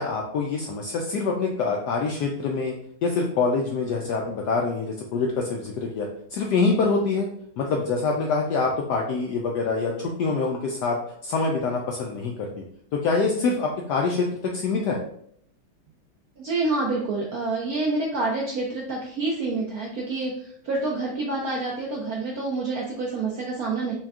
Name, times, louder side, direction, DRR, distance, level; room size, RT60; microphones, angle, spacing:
voice 1, 0.0-2.7 3.0-7.3 7.6-11.0 11.2-12.5 12.9-15.0, left 4 dB, 80° left, 0 dB, 0.9 m, -25 dB
voice 2, 16.4-23.9, right 3 dB, 75° right, -2 dB, 0.8 m, -27 dB
4.4 x 2.3 x 3.5 m, 0.67 s
omnidirectional pair, 2.2 m